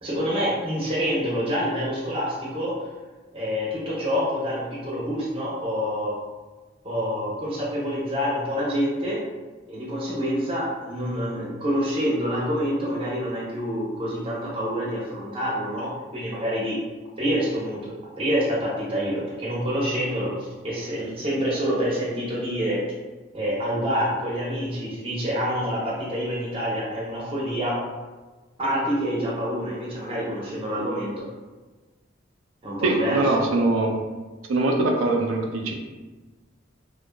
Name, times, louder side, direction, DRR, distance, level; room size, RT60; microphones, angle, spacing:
voice 1, 0.0-2.7 3.3-6.1 6.8-9.2 9.7-16.8 17.2-20.3 20.6-22.8 23.3-27.8 28.6-31.3 32.6-33.3, equal, 30° right, -6 dB, 0.6 m, -27 dB
voice 2, 32.8-33.9 34.5-35.7, right 2 dB, 90° right, 2 dB, 0.4 m, -22 dB
2.5 x 2.2 x 2.2 m, 1.3 s
head